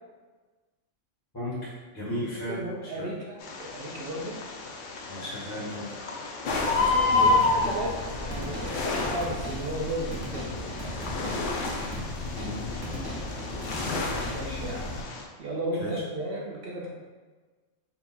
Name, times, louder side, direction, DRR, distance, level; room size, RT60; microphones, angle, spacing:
voice 1, 1.3-3.1 5.1-5.9 7.1-7.4 12.4-12.6 15.8-16.0, equal, 20° left, -10 dB, 1.4 m, -35 dB
voice 2, 2.5-4.3 6.7-10.5 14.3-15.0 15.4-16.9, right 1 dB, 60° right, -3 dB, 0.7 m, -34 dB
Bird, 3.4-15.2, left 3 dB, 80° left, 0.9 m, -31 dB
sound 1, 6.4-15.0, left 2 dB, 55° left, 0.6 m, -33 dB
sound 2, 7.2-14.4, right 1 dB, 25° right, 0.6 m, -41 dB
4.3 x 2.3 x 4.1 m, 1.4 s
omnidirectional pair, 1.3 m